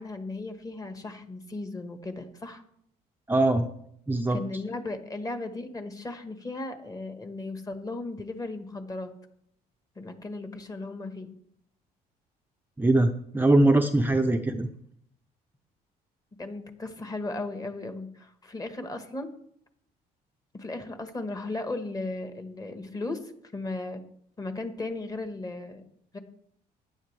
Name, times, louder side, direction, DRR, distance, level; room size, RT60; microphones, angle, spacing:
voice 1, 0.0-2.6 4.3-9.1 10.0-11.3 16.4-19.3 20.5-24.0 24.4-25.8 26.1-26.2, left 2 dB, 20° left, 7 dB, 1.4 m, -36 dB
voice 2, 3.3-3.7 4.1-4.4 12.8-14.7, right 2 dB, 10° right, 4 dB, 0.6 m, -22 dB
14.5 x 9.8 x 3.4 m, 0.71 s
cardioid pair, 110°, 17 cm